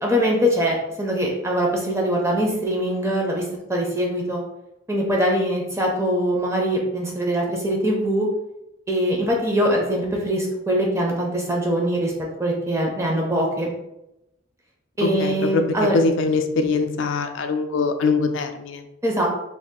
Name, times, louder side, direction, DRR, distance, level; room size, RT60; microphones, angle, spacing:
voice 1, 0.0-3.4 3.7-4.4 4.9-8.3 8.9-12.1 12.4-13.7 15.0-15.9 19.0-19.3, equal, 15° right, -1 dB, 0.5 m, -22 dB
voice 2, 15.0-15.6 15.9-18.8, left 4 dB, 70° left, 7 dB, 0.3 m, -22 dB
2.6 x 2.4 x 3.5 m, 0.88 s
head